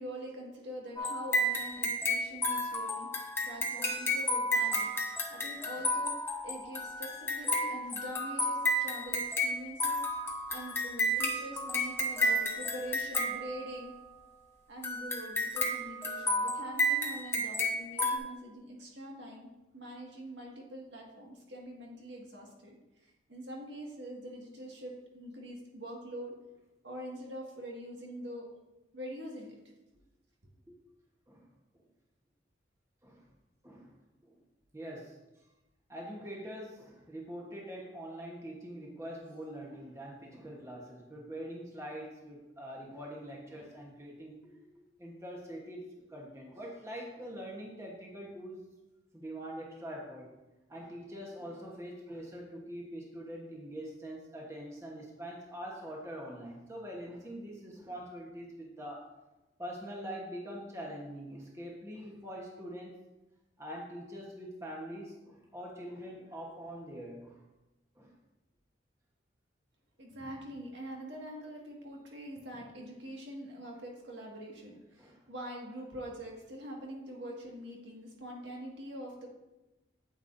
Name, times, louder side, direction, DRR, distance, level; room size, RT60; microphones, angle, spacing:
voice 1, 0.0-13.9 14.7-19.5 19.7-26.3 26.8-28.4 28.9-29.6 70.0-79.3, equal, 70° right, -1 dB, 1.9 m, -44 dB
sound 1, 1.0-14.1 14.8-18.2, left 1 dB, 15° left, 0.8 m, -32 dB
voice 2, 33.6-34.0 34.2-34.4 34.7-35.2 35.9-44.7 45.0-48.6 49.1-50.3 50.7-59.1 59.6-63.0 63.6-67.4 68.0-68.1 75.0-75.2, equal, 15° right, -2 dB, 1.1 m, -44 dB
8.9 x 8.4 x 2.6 m, 1.0 s
head